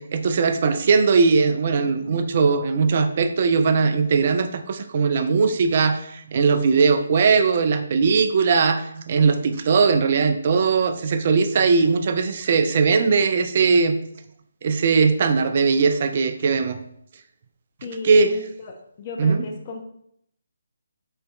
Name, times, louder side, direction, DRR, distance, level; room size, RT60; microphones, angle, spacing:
voice 1, 0.0-14.0 14.6-16.8 18.0-18.4 19.2-19.5, right 5 dB, 40° right, 8 dB, 0.3 m, -19 dB
voice 2, 17.8-18.5 19.0-19.8, left 3 dB, 30° left, 2 dB, 0.4 m, -34 dB
3.9 x 3.1 x 2.3 m, 0.71 s
figure-of-eight pair, 145°, 0 cm